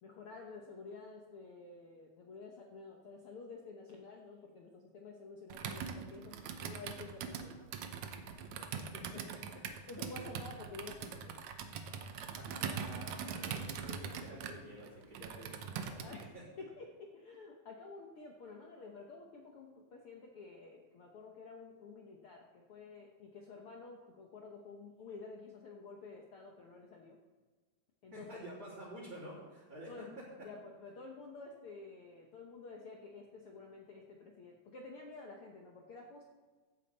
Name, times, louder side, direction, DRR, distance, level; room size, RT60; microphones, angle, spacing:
voice 1, 0.0-6.3 6.6-7.9 8.2-8.7 9.1-9.2 9.9-11.4 16.0-16.3 16.6-27.2 28.0-28.4 29.9-30.1 30.4-36.3, left 3 dB, 70° left, 0 dB, 1.3 m, -51 dB
Computer keyboard, 5.5-16.3, right 7 dB, 70° right, 1.8 m, -42 dB
voice 2, 8.8-9.2 9.7-9.9 12.3-16.4 28.1-30.5, right 1 dB, 35° right, -7 dB, 3.7 m, -50 dB
15.5 x 8.7 x 4.1 m, 1.4 s
omnidirectional pair, 4.0 m